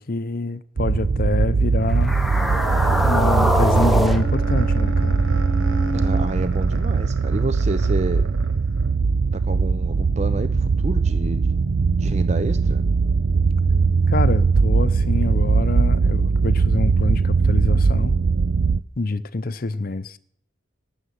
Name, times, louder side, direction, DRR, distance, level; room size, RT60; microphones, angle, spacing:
voice 1, 0.0-2.2 3.0-5.3 14.1-18.2 19.0-20.2, left 2 dB, 50° left, 0.7 m, -26 dB
sound 1, 0.8-18.8, right 4 dB, 70° right, 0.5 m, -20 dB
sound 2, 1.9-6.3, equal, ahead, 1.1 m, -25 dB
sound 3, 2.5-8.9, right 2 dB, 85° right, 1.9 m, -37 dB
voice 2, 5.9-8.2 9.3-11.4 12.0-12.8, right 2 dB, 35° right, 0.7 m, -29 dB
18.0 x 7.4 x 9.4 m
head